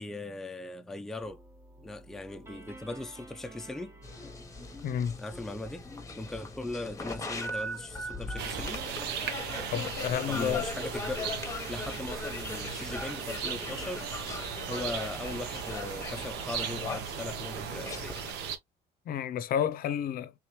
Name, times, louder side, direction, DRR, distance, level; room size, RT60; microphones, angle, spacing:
voice 1, 0.0-1.4 1.8-4.0 5.2-5.9 6.2-8.8 10.3-14.1 14.7-18.2, left 2 dB, 5° left, 0.4 m, -39 dB
sound 1, 1.2-15.9, right 1 dB, 15° right, 1.0 m, -52 dB
sound 2, 4.0-18.3, left 3 dB, 20° left, 1.0 m, -40 dB
voice 2, 4.8-5.2 9.7-10.7 18.3-18.4 19.1-20.3, left 9 dB, 60° left, 0.6 m, -30 dB
sound 3, 8.4-18.6, right 7 dB, 85° right, 0.9 m, -37 dB
3.5 x 2.9 x 3.1 m
cardioid pair, 110°, 17 cm